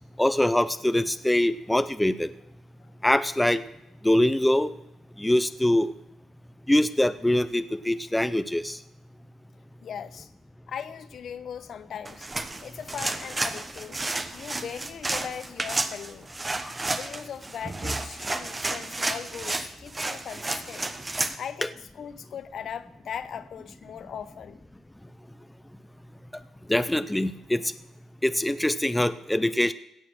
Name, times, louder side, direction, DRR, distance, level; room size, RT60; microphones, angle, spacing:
voice 1, 0.2-2.3 3.0-3.6 4.0-4.7 5.2-5.9 6.7-8.8 16.6-16.7 21.6-21.7 26.7-27.7 28.2-29.7, left 1 dB, 5° left, 13 dB, 0.5 m, -23 dB
voice 2, 9.8-10.3 10.7-12.3 12.6-14.0 14.3-16.3 16.9-20.9 21.4-24.6, left 8 dB, 60° left, 13 dB, 0.8 m, -39 dB
sound 1, 12.0-21.4, right 2 dB, 20° right, 1.0 m, -31 dB
17.0 x 6.5 x 6.3 m, 0.84 s
cardioid pair, 90°, 0 cm